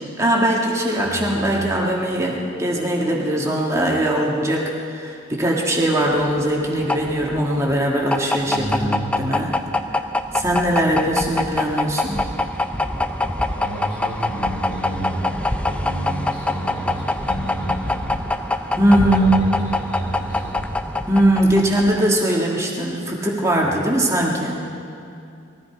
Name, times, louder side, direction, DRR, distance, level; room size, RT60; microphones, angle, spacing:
voice 1, 0.2-9.5 10.3-12.2 18.8-19.4 21.1-24.6, right 1 dB, 15° right, -2 dB, 1.7 m, -20 dB
voice 2, 1.0-1.7 8.5-9.4 13.6-18.1 18.8-20.6 23.6-23.7, right 1 dB, 70° left, -9 dB, 4.0 m, -30 dB
sound 1, 6.1-22.2, left 2 dB, 5° left, 0.4 m, -24 dB
21.0 x 14.5 x 4.6 m, 2.6 s
head